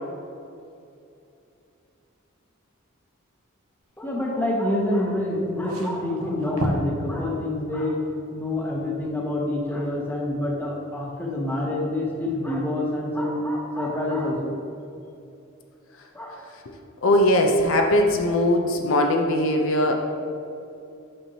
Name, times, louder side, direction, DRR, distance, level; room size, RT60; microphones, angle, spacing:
voice 1, 4.0-8.0 8.3-14.5 16.1-16.5, left 1 dB, 10° left, -3 dB, 0.9 m, -27 dB
sound 1, 5.3-7.0 7.4-7.5 8.7-8.8, right 1 dB, 85° right, 1.0 m, -31 dB
voice 2, 17.0-19.9, left 1 dB, 70° left, 3 dB, 0.6 m, -20 dB
8.5 x 5.9 x 2.9 m, 2.6 s
head